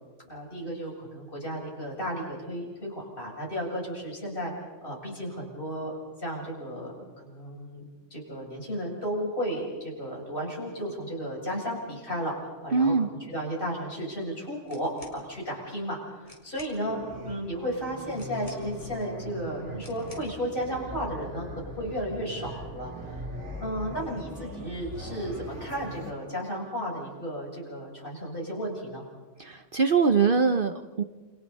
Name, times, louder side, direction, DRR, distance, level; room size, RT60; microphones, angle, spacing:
voice 1, 0.3-4.5 4.8-5.9 6.2-7.8 8.1-23.2 23.6-29.0, equal, 45° left, -3 dB, 7.6 m, -34 dB
voice 2, 12.7-13.1 29.4-31.0, right 5 dB, 50° right, 8 dB, 1.0 m, -23 dB
sound 1, 14.6-15.2 15.9-16.0 16.2-16.8 18.1-18.9 19.8-20.4, left 1 dB, 25° left, 4.1 m, -51 dB
sound 2, 16.8-26.1, right 1 dB, 65° right, 3.4 m, -41 dB
29.0 x 29.0 x 4.2 m, 1.4 s
omnidirectional pair, 1.3 m